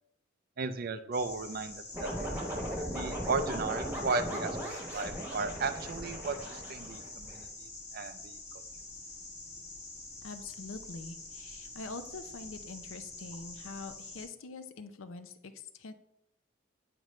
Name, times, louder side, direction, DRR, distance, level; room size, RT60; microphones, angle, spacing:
voice 1, 0.6-2.1 2.9-4.6 4.9-8.4, right 4 dB, 45° right, 10 dB, 0.4 m, -35 dB
sound 1, 1.1-14.3, left 3 dB, 30° left, 1.1 m, -46 dB
sound 2, 1.9-7.4, equal, 10° right, 1.2 m, -38 dB
voice 2, 10.2-15.3 15.7-15.9, left 3 dB, 65° left, 10 dB, 0.6 m, -44 dB
8.8 x 5.1 x 3.1 m, 0.80 s
head